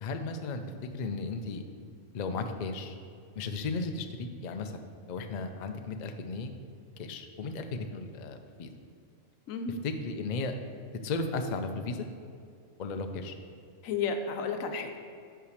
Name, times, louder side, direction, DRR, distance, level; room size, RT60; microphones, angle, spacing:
voice 1, 0.0-0.6 0.9-1.6 2.1-2.9 3.4-4.8 5.1-6.5 7.0-8.7 9.8-10.5 11.0-12.1 12.8-13.3, left 3 dB, 60° left, 6 dB, 0.4 m, -35 dB
voice 2, 9.5-9.8 13.8-15.0, left 5 dB, 90° left, 6 dB, 1.1 m, -32 dB
5.7 x 4.9 x 6.5 m, 2.3 s
omnidirectional pair, 1.4 m